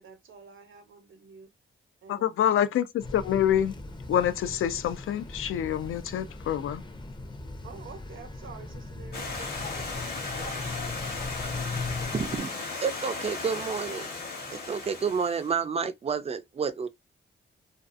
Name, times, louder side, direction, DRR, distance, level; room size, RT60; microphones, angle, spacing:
voice 1, 0.0-1.5 2.0-2.5 7.6-11.0, right 6 dB, 70° right, 0.8 m, -49 dB
voice 2, 2.1-3.7 4.1-6.8, left 10 dB, 75° left, 0.4 m, -26 dB
sound 1, 3.0-12.4, left 3 dB, 20° left, 0.5 m, -39 dB
Stream, 9.1-15.6, left 3 dB, 50° left, 1.0 m, -36 dB
voice 3, 12.1-12.5 12.8-14.1 14.5-16.9, right 6 dB, 30° right, 0.4 m, -30 dB
2.6 x 2.3 x 2.4 m
cardioid pair, 80°, 21 cm